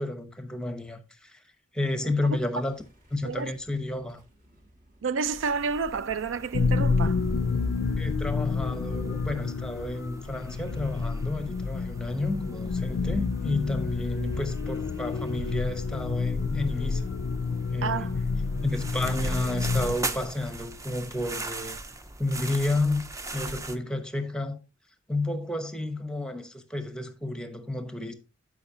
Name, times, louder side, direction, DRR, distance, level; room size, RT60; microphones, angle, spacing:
voice 1, 0.0-1.4 1.7-2.8 3.1-4.2 8.0-17.0 17.7-18.1 18.6-21.8 22.2-23.0 23.3-24.6 25.1-28.1, left 2 dB, 5° left, 0.8 m, -31 dB
sound 1, 2.7-21.9, equal, 45° right, 1.6 m, -57 dB
voice 2, 5.0-7.2 17.8-18.1, right 5 dB, 85° right, 0.4 m, -29 dB
sound 2, 5.2-23.8, right 2 dB, 15° right, 0.5 m, -41 dB
sound 3, 6.5-20.0, left 4 dB, 90° left, 0.4 m, -29 dB
10.5 x 5.1 x 2.7 m
head